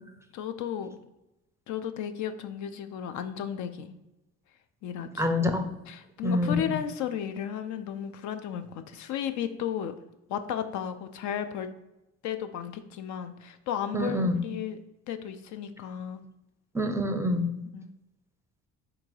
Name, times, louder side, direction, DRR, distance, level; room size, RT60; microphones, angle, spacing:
voice 1, 0.3-0.9 1.7-4.0 4.8-5.1 5.9-10.0 10.3-11.7 12.2-14.8 15.1-16.2 17.7-17.9, left 9 dB, 65° left, 9 dB, 0.5 m, -34 dB
voice 2, 5.2-5.6 6.2-6.8 13.9-14.4 16.7-17.5, left 1 dB, 10° right, 5 dB, 0.5 m, -26 dB
3.7 x 2.6 x 4.6 m, 0.93 s
supercardioid pair, 80°, 32 cm